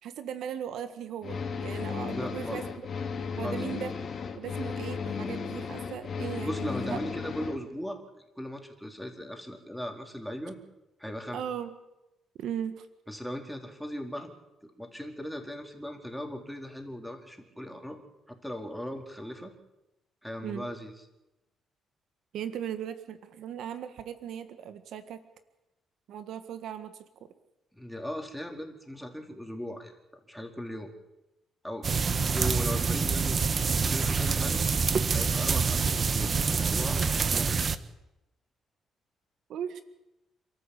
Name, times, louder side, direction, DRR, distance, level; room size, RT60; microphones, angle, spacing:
voice 1, 0.0-2.7 3.4-3.9 4.3-7.0 11.3-11.7 12.4-12.9 20.4-20.7 22.3-25.2 26.1-27.3 39.5-39.8, right 9 dB, 75° right, 10 dB, 1.7 m, -37 dB
sound 1, 1.2-7.6, left 5 dB, 50° left, 3.0 m, -35 dB
voice 2, 2.1-2.6 3.4-3.7 6.4-8.0 8.4-10.6 11.0-11.4 13.1-14.3 14.6-18.0 18.3-19.5 20.2-20.9 27.7-29.9 30.3-30.9 31.6-34.7 35.1-37.7, equal, ahead, 3 dB, 4.1 m, -38 dB
sound 2, 31.8-37.8, right 5 dB, 40° right, 1.3 m, -26 dB
28.0 x 13.5 x 8.5 m, 0.97 s
cardioid pair, 90°, 0 cm